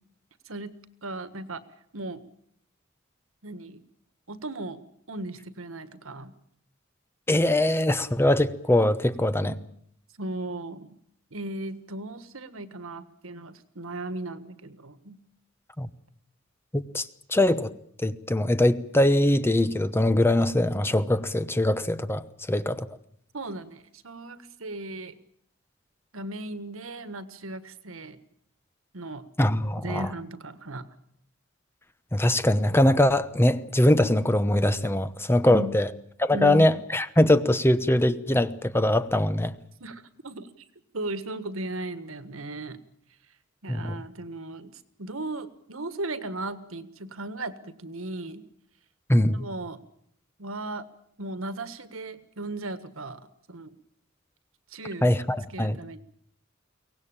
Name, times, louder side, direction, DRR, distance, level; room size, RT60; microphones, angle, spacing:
voice 1, 0.4-1.6 1.9-2.2 3.4-3.8 4.3-4.8 5.1-6.3 9.3-9.6 10.2-11.0 11.3-15.2 23.3-25.2 26.1-28.2 28.9-29.3 29.8-30.9 35.4-35.8 36.3-36.7 39.8-40.5 40.9-42.8 43.6-48.4 49.3-49.8 50.4-50.8 51.2-53.2 53.5-53.7 54.7-55.1 55.5-56.0, right 2 dB, 85° right, 12 dB, 1.6 m, -36 dB
voice 2, 7.3-9.5 15.8-15.9 16.7-17.7 18.0-22.2 22.5-22.9 29.4-30.1 32.1-35.9 36.2-39.5 43.7-43.9 49.1-49.4 55.0-55.8, left 1 dB, 10° left, 13 dB, 0.9 m, -22 dB
23.5 x 18.0 x 8.9 m, 0.68 s
head